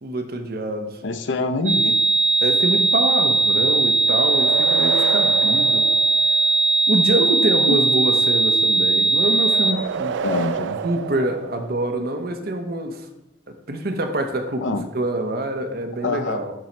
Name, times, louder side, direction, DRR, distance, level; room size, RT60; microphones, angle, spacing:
voice 1, 0.0-1.0 1.6-1.8 2.4-5.8 6.2-6.4 6.9-10.2 10.8-13.1 13.5-16.5, right 1 dB, 55° right, 5 dB, 0.9 m, -25 dB
voice 2, 1.0-1.9 7.7-7.8 10.2-10.8 14.6-14.8 16.0-16.4, left 3 dB, 75° left, 10 dB, 0.7 m, -25 dB
sound 1, 1.7-9.7, right 3 dB, 85° right, 0.8 m, -19 dB
sound 2, 4.0-6.8 9.4-12.1, right 7 dB, 70° right, 0.3 m, -29 dB
11.0 x 4.2 x 4.5 m, 0.91 s
head